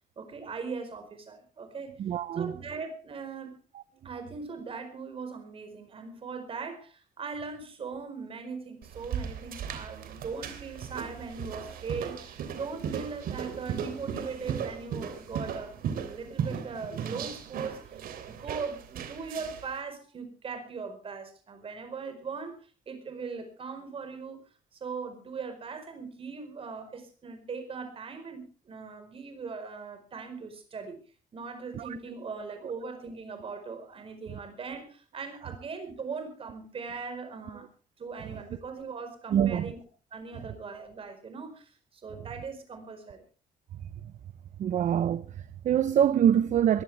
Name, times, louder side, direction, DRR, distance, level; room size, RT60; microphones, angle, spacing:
voice 1, 0.2-2.0 2.3-3.6 4.0-17.8 18.3-22.5 22.9-31.0 31.3-37.7 38.0-39.8 40.1-43.2, right 5 dB, 40° right, 4.7 m, -40 dB
voice 2, 2.0-2.5 31.7-31.9 39.3-39.7 44.6-46.8, right 9 dB, 55° right, 0.8 m, -25 dB
sound 1, 8.8-19.7, right 8 dB, 85° right, 3.2 m, -37 dB
22.0 x 15.5 x 3.5 m
cardioid pair, 165°, 15 cm